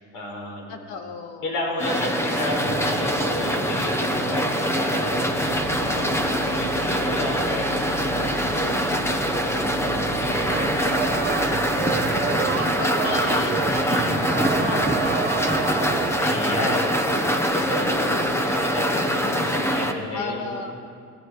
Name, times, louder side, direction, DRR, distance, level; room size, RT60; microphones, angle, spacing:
voice 1, 0.0-0.8 1.4-5.6 6.4-9.3 9.8-12.0 12.3-13.1 14.5-15.2 16.2-20.6, left 1 dB, 60° left, -1 dB, 4.7 m, -32 dB
voice 2, 0.7-1.5 5.8-6.6 12.7-15.6 20.1-20.7, left 4 dB, 85° left, 5 dB, 1.8 m, -36 dB
sound 1, 1.8-19.9, equal, 5° left, 0.8 m, -24 dB
sound 2, 2.7-16.9, right 9 dB, 25° right, 0.4 m, -33 dB
sound 3, 5.4-12.2, right 4 dB, 65° right, 0.9 m, -41 dB
17.0 x 13.0 x 4.8 m, 2.3 s
cardioid pair, 130°, 37 cm